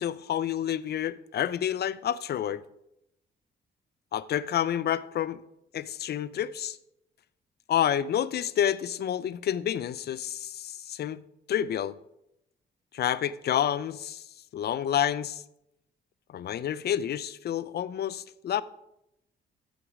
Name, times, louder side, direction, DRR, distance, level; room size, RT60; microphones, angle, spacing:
voice 1, 0.0-2.6 4.1-5.4 5.7-6.8 7.7-11.2 11.5-12.0 12.9-14.3 14.5-15.4 16.3-18.6, left 10 dB, 55° left, 0.5 m, -29 dB
15.0 x 5.3 x 4.8 m
cardioid pair, 90°, 20 cm